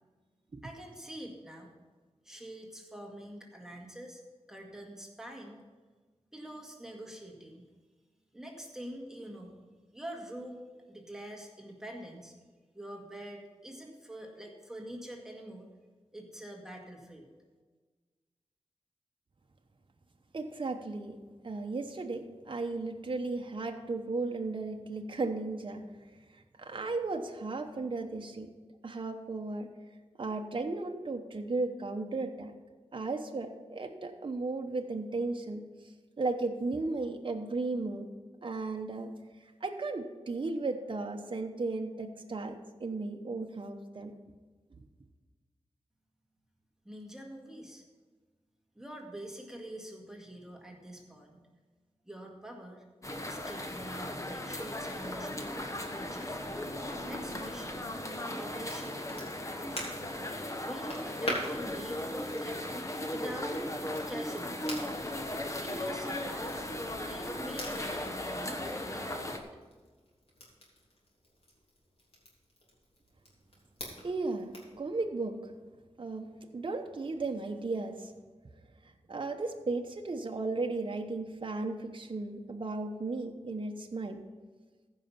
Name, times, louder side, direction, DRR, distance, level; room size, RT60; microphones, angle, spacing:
voice 1, 0.6-1.8 2.2-4.2 4.5-5.6 6.3-7.6 8.3-9.6 9.9-10.6 10.9-12.4 12.7-15.7 16.1-17.3 46.9-47.8 48.8-51.5 52.0-52.8 53.2-55.6 55.9-56.4 57.0-57.9 58.3-59.3 59.6-59.9 60.6-63.6 64.1-64.9 65.6-66.5 67.0-69.4, right 1 dB, 5° right, 0 dB, 1.9 m, -45 dB
voice 2, 20.3-21.2 21.4-25.8 26.6-28.5 28.8-29.7 30.2-32.5 32.9-35.6 36.2-38.1 38.4-39.1 39.6-44.1 74.0-75.5 76.0-76.3 76.5-78.1 79.1-84.2, right 3 dB, 50° right, 4 dB, 0.9 m, -35 dB
sound 1, 53.0-69.4, left 1 dB, 30° left, 1.2 m, -37 dB
Crackle, 58.1-74.8, left 1 dB, 60° left, 3.4 m, -46 dB
15.0 x 5.7 x 5.8 m, 1.4 s
wide cardioid pair, 75°, 11 cm